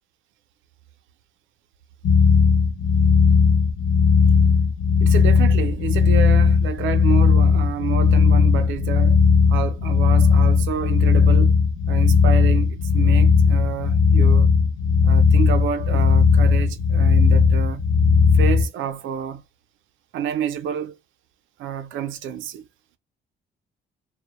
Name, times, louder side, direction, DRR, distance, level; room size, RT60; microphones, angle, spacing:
sound 1, 2.0-18.7, left 5 dB, 55° left, 0.5 m, -17 dB
voice 1, 5.0-9.2 9.5-11.5 11.9-14.5 15.0-17.8 18.3-19.4 20.1-21.0 21.6-22.6, right 8 dB, 75° right, 0.5 m, -29 dB
2.1 x 2.0 x 2.8 m
cardioid pair, 90°, 20 cm